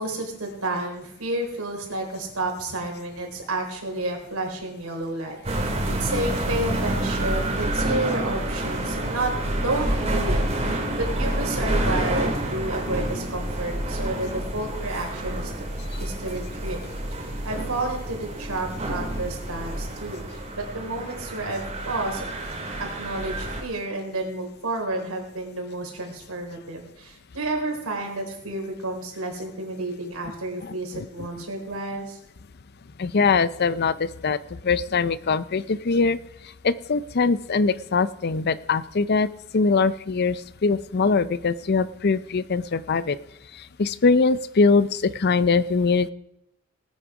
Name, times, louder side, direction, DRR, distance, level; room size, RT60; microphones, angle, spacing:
voice 1, 0.0-15.5 16.0-16.8 17.4-22.3 22.8-32.2, right 2 dB, 90° right, 1 dB, 3.8 m, -31 dB
sound 1, 5.4-23.6, right 1 dB, 30° right, 2.2 m, -28 dB
voice 2, 33.0-34.4 34.6-36.2 36.6-39.3 39.5-43.2 43.8-46.1, left 4 dB, 50° left, 16 dB, 0.5 m, -22 dB
19.5 x 9.0 x 4.8 m, 0.81 s
head